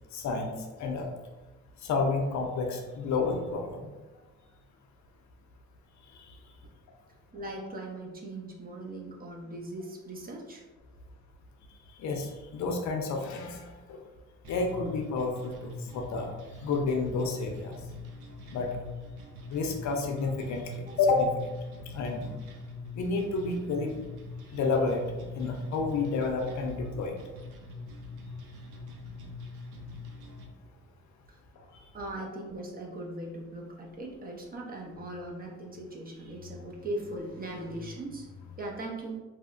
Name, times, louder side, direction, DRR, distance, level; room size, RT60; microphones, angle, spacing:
voice 1, 0.1-0.5 0.8-1.1 1.8-3.9 12.0-14.0 14.5-16.3 16.6-17.8 18.5-18.7 19.5-21.5 21.9-22.3 23.0-23.9 24.5-25.0 25.3-27.1, left 4 dB, 70° left, 2 dB, 0.5 m, -30 dB
voice 2, 7.3-10.6 20.9-21.0 31.3-31.4 31.9-39.2, right 1 dB, 30° right, -1 dB, 0.5 m, -39 dB
sound 1, 14.4-30.4, left 3 dB, 90° right, 0.5 m, -44 dB
2.7 x 2.1 x 2.4 m, 1.2 s
cardioid pair, 90°, 30 cm